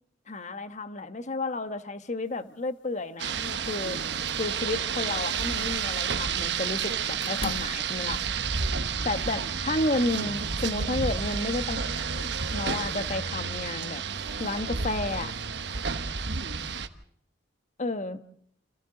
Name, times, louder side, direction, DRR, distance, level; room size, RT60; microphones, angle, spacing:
voice 1, 0.3-4.0 4.4-8.2 9.0-14.0 14.4-15.3 17.8-18.2, left 2 dB, 40° left, 1.2 m, -32 dB
Rain, 3.2-16.9, right 6 dB, 65° right, 1.2 m, -31 dB
voice 2, 3.8-4.4 8.6-9.6 10.0-10.5 12.9-13.3 16.3-16.6, right 1 dB, 90° right, 2.6 m, -42 dB
sound 1, 4.2-4.7 5.1-6.2 7.2-8.1, left 3 dB, 85° left, 1.3 m, -41 dB
30.0 x 26.5 x 3.9 m
head